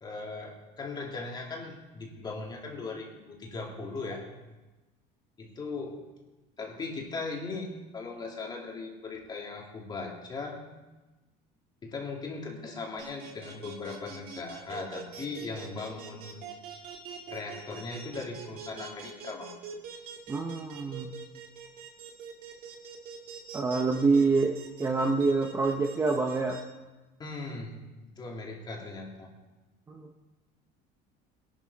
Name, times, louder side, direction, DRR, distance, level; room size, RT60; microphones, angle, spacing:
voice 1, 0.0-4.3 5.4-6.0 6.6-10.6 11.8-16.5 17.3-19.5 27.2-27.8 28.2-29.3, left 3 dB, 20° left, -1 dB, 2.6 m, -38 dB
sound 1, 13.0-26.6, right 7 dB, 50° right, 2.0 m, -44 dB
voice 2, 20.3-21.1 23.5-26.6 29.9-30.1, right 3 dB, 15° right, 2 dB, 0.8 m, -26 dB
21.5 x 11.5 x 4.1 m, 1.1 s
cardioid pair, 160°, 19 cm